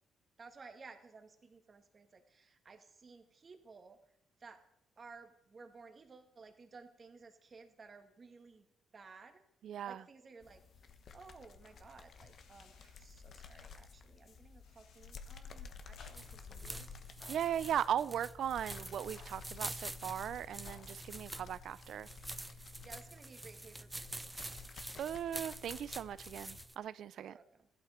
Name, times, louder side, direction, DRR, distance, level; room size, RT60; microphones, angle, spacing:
voice 1, 0.4-4.0 4.4-4.6 5.0-8.6 8.9-9.4 9.9-10.6 11.1-16.9 17.2-17.8 22.8-24.7 27.2-27.7, right 4 dB, 40° right, 2.0 m, -56 dB
voice 2, 9.6-10.0 17.3-22.1 25.0-27.4, right 9 dB, 70° right, 0.5 m, -38 dB
sound 1, 10.4-26.7, left 5 dB, 55° left, 1.2 m, -53 dB
sound 2, 11.6-13.1 14.6-15.1 16.0-16.5 17.2-17.9 19.1-19.6 20.6-21.0, left 5 dB, 85° left, 2.3 m, -62 dB
sound 3, 16.0-26.7, right 1 dB, 10° right, 0.6 m, -47 dB
14.5 x 11.5 x 5.1 m
cardioid pair, 90°, 0 cm